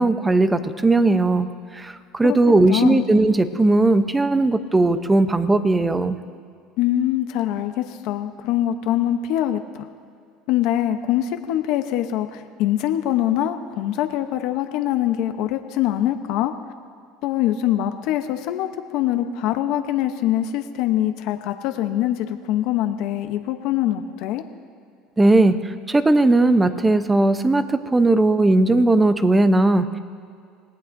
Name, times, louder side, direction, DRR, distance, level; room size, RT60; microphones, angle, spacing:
voice 1, 0.0-1.5 1.7-6.2 25.2-30.0, right 2 dB, 10° right, 11 dB, 0.7 m, -18 dB
voice 2, 2.7-3.0 6.8-9.9 10.5-16.5 17.2-18.7 18.9-24.4, left 12 dB, 65° left, 7 dB, 0.8 m, -23 dB
26.0 x 18.5 x 2.7 m, 2.3 s
supercardioid pair, 125°, 0 cm